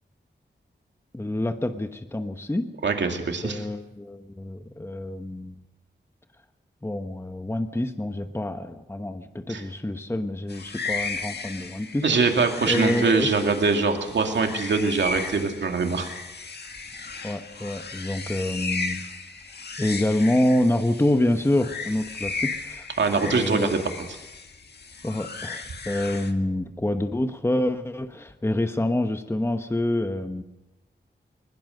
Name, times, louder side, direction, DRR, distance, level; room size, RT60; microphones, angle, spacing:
voice 1, 1.1-2.7 3.4-5.6 6.8-12.0 12.4-13.3 17.2-19.0 19.8-22.9 23.2-23.8 25.0-30.4, left 1 dB, 15° left, 7 dB, 1.1 m, -27 dB
voice 2, 2.8-3.6 9.5-9.6 12.0-16.1 23.0-23.8, right 4 dB, 85° right, 4 dB, 2.4 m, -23 dB
sound 1, 10.5-26.3, left 4 dB, 65° left, 1.8 m, -35 dB
21.5 x 20.5 x 6.6 m, 0.99 s
wide cardioid pair, 90°, 18 cm